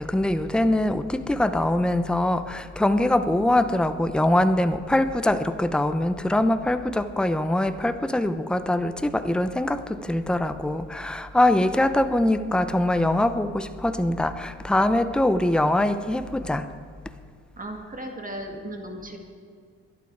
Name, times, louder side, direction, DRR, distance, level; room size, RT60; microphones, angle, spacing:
voice 1, 0.0-16.7, left 1 dB, 5° left, 10 dB, 0.7 m, -23 dB
voice 2, 17.6-19.2, right 1 dB, 25° right, 3 dB, 2.1 m, -36 dB
20.5 x 11.5 x 4.7 m, 2.1 s
cardioid pair, 90°, 30 cm